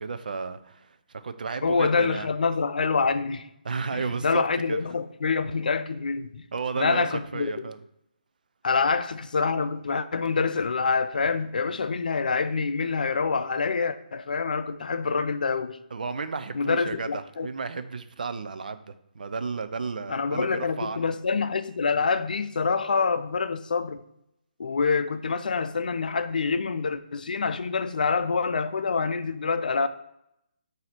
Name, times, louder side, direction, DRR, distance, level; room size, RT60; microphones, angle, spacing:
voice 1, 0.0-2.3 3.6-4.8 6.5-7.1 7.3-7.8 15.9-18.8 19.1-21.1, right 4 dB, 65° right, 0.5 m, -33 dB
voice 2, 1.6-3.5 3.9-6.4 6.7-7.5 8.6-15.8 16.5-17.5 20.1-24.0 24.6-29.9, left 5 dB, 65° left, 0.4 m, -26 dB
7.7 x 2.8 x 4.4 m
figure-of-eight pair, 145°, 5 cm